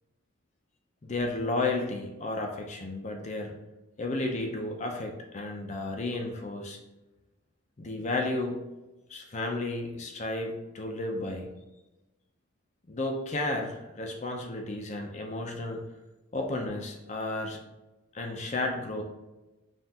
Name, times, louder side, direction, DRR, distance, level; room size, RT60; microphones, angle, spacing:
voice 1, 1.0-3.6 4.0-6.8 7.8-8.6 9.1-11.5 12.9-15.8 16.3-17.6 18.1-19.0, left 2 dB, 35° left, 2 dB, 0.5 m, -32 dB
5.6 x 2.5 x 2.8 m, 1.0 s
head